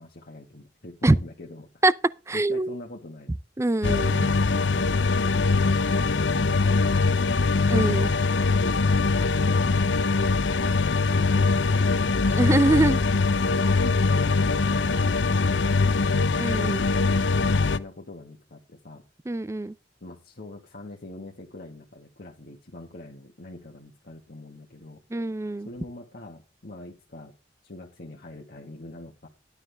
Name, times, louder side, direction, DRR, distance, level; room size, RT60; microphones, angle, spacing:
voice 1, 0.0-1.8 2.3-3.4 8.0-9.7 10.6-12.3 13.7-19.1 20.0-25.0 25.6-27.3 27.6-29.3, left 1 dB, 55° left, 1.5 m, -43 dB
voice 2, 2.3-2.8 3.6-4.3 7.7-8.1 12.3-13.0 16.4-16.8 19.3-19.7 25.1-25.7, right 2 dB, 15° right, 0.4 m, -23 dB
sound 1, 3.8-17.8, left 4 dB, 75° left, 0.7 m, -22 dB
12.0 x 9.9 x 3.4 m
head